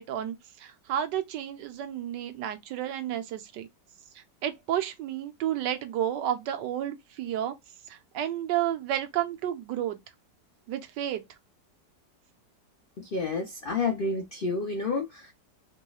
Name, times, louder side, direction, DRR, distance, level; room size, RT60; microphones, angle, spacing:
voice 1, 0.0-3.7 4.1-7.6 7.9-10.0 10.7-11.2, right 11 dB, 80° right, 1.3 m, -31 dB
voice 2, 13.0-15.3, left 3 dB, 70° left, 0.5 m, -30 dB
3.6 x 3.0 x 2.3 m
omnidirectional pair, 1.9 m